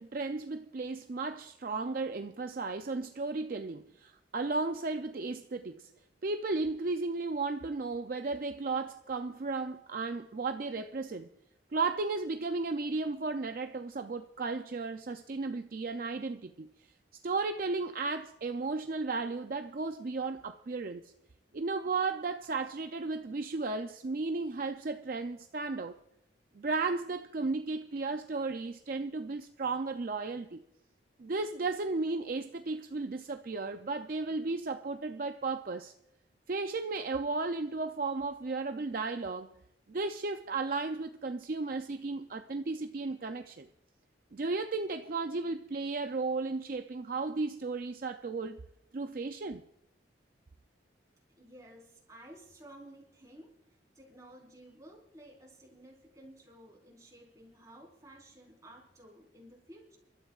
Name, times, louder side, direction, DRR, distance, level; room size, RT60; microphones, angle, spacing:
voice 1, 0.0-5.9 6.2-11.3 11.7-16.7 17.2-21.1 21.5-26.0 26.5-30.6 31.2-35.9 36.5-39.6 39.9-43.7 44.3-48.6 48.9-49.6, right 3 dB, 50° right, 0.4 m, -34 dB
voice 2, 51.4-60.0, right 1 dB, 20° right, 4.2 m, -54 dB
28.0 x 12.5 x 2.4 m
head